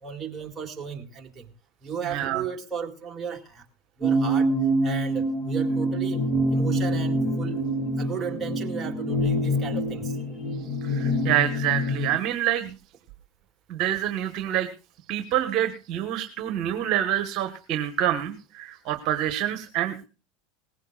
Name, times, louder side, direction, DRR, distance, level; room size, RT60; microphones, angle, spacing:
voice 1, 0.0-1.5 1.8-3.7 4.0-4.5 4.8-6.2 6.5-7.6 8.0-10.5, right 7 dB, 20° right, 2 dB, 2.2 m, -35 dB
voice 2, 2.1-2.4 10.8-12.7 13.7-14.7 15.1-20.0, right 11 dB, 50° right, 8 dB, 1.3 m, -27 dB
sound 1, 4.0-12.2, right 1 dB, 10° left, 2.3 m, -25 dB
19.0 x 15.5 x 2.4 m, 0.33 s
hypercardioid pair, 100°, 0 cm